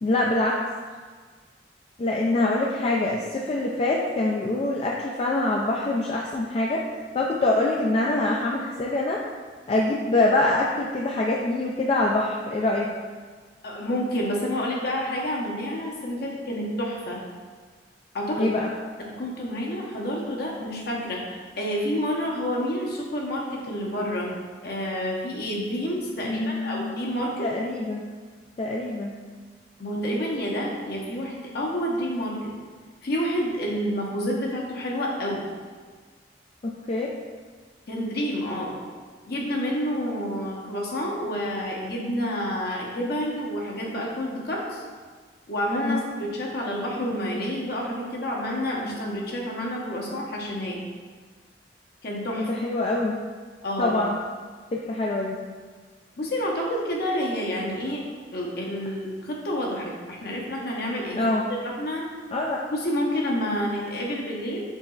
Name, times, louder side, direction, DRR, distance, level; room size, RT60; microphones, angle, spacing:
voice 1, 0.0-0.6 2.0-6.8 7.1-9.2 9.7-12.9 18.4-18.7 26.2-27.0 27.4-28.1 28.6-29.2 36.6-37.1 45.8-46.0 52.4-53.2 53.8-54.2 54.7-55.4 61.2-61.5 62.3-62.6, left 2 dB, 35° left, -2 dB, 0.3 m, -24 dB
voice 2, 13.6-17.2 18.1-18.5 19.0-24.3 24.6-27.5 29.8-32.5 33.0-35.5 37.9-38.7 39.2-44.8 45.5-50.8 52.0-52.5 53.6-53.9 56.2-58.0 58.3-61.2 61.6-62.1 62.7-64.6, equal, 60° left, -2 dB, 0.8 m, -29 dB
5.4 x 4.0 x 2.4 m, 1.5 s
head